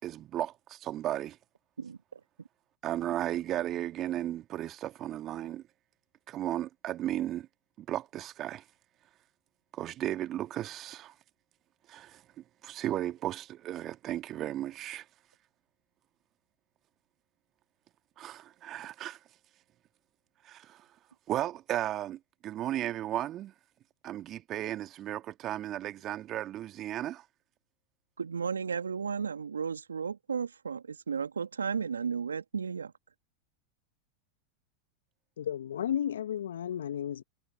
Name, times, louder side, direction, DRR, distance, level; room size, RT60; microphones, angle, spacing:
voice 1, 0.0-1.4 2.8-5.6 6.3-7.5 7.8-8.6 9.7-11.1 11.9-12.2 12.6-15.1 18.2-19.2 20.4-20.8 21.3-23.5 24.0-27.2, right 13 dB, 35° right, 2.1 m, -35 dB
voice 2, 1.8-2.2 28.2-32.9, right 6 dB, 80° right, 2.0 m, -34 dB
voice 3, 35.4-37.2, left 10 dB, 75° left, 1.2 m, -33 dB
figure-of-eight pair, 90°, 0 cm